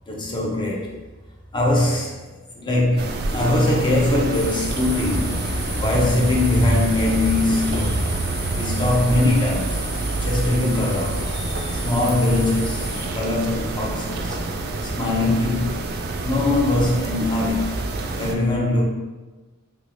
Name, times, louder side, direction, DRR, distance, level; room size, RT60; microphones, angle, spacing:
voice 1, 0.1-1.0 1.5-8.1 8.5-9.8 10.2-14.4 14.8-15.8 16.2-17.8 18.2-18.9, left 2 dB, 20° left, -2 dB, 0.5 m, -22 dB
sound 1, 3.0-18.4, right 2 dB, 50° right, 0.3 m, -27 dB
sound 2, 4.3-13.1, equal, 55° left, 1.3 m, -33 dB
3.1 x 3.0 x 2.5 m, 1.2 s
head